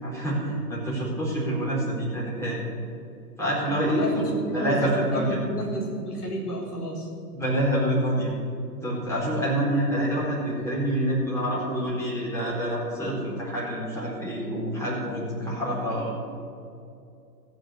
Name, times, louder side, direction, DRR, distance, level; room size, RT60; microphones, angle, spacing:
voice 1, 0.0-2.6 3.4-4.2 4.5-5.4 7.3-8.3 8.8-16.1, right 1 dB, 5° left, -7 dB, 4.2 m, -27 dB
voice 2, 3.9-7.1, equal, 70° left, -2 dB, 4.2 m, -31 dB
15.0 x 8.1 x 8.4 m, 2.6 s
figure-of-eight pair, 120°, 48 cm